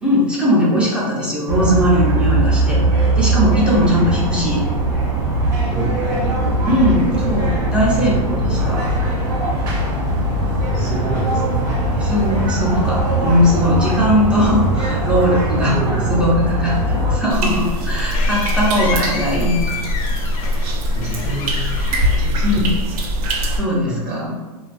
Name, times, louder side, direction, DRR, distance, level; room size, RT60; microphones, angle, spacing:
voice 1, 0.0-4.6 6.6-8.8 10.8-10.9 12.0-19.6 21.9-22.0 22.4-22.7 23.6-24.4, equal, 5° right, -5 dB, 0.4 m, -19 dB
sound 1, 1.5-17.2, right 1 dB, 90° right, 0.9 m, -20 dB
voice 2, 5.7-6.5 10.7-11.7 15.6-16.5 20.9-22.8 23.8-24.3, right 2 dB, 35° right, -2 dB, 0.7 m, -29 dB
sound 2, 17.2-23.0, left 5 dB, 60° left, 0.4 m, -32 dB
sound 3, 17.3-23.6, equal, 70° right, 0.5 m, -21 dB
2.5 x 2.2 x 2.4 m, 1.2 s
hypercardioid pair, 140°, 20 cm